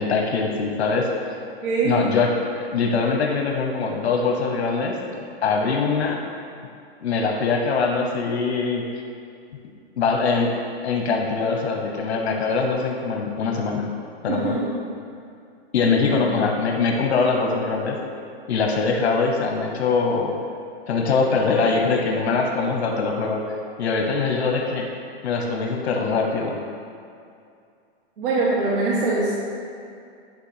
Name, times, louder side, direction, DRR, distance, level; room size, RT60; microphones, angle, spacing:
voice 1, 0.0-1.4 1.8-2.3 2.6-5.0 5.4-6.2 7.0-8.8 10.0-10.5 10.8-13.9 14.2-14.6 15.7-18.0 18.5-20.3 20.9-23.4 23.8-24.9 25.2-26.6, left 4 dB, 90° left, 1 dB, 1.0 m, -22 dB
voice 2, 1.6-1.9 14.3-14.8 15.8-16.4 28.2-29.3, right 3 dB, 55° right, -6 dB, 1.3 m, -24 dB
9.0 x 3.3 x 5.8 m, 2.4 s
supercardioid pair, 170°, 32 cm